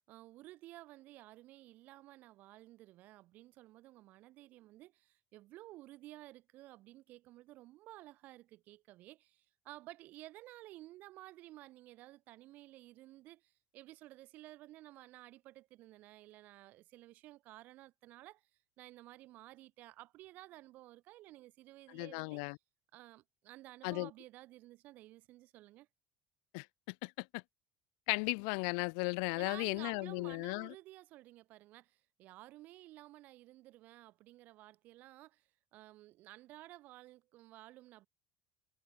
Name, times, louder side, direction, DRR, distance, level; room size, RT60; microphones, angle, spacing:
voice 1, 0.0-18.5 18.8-22.5 22.9-25.9 29.3-38.1, right 17 dB, 55° right, 2.1 m, -54 dB
voice 2, 21.9-22.6 23.8-24.1 26.5-27.4 28.1-30.7, left 40 dB or more, 80° left, 0.4 m, -36 dB
cardioid pair, 145°, 4 cm